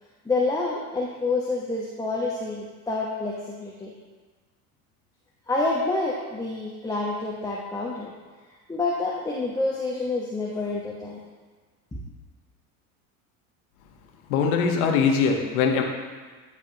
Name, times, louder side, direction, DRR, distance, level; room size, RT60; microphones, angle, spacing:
voice 1, 0.2-3.9 5.5-8.1 8.7-11.2, left 3 dB, 10° left, -3 dB, 1.1 m, -28 dB
voice 2, 14.3-15.8, left 5 dB, 75° left, 2 dB, 1.4 m, -21 dB
13.5 x 4.9 x 2.9 m, 1.4 s
hypercardioid pair, 85°, 43 cm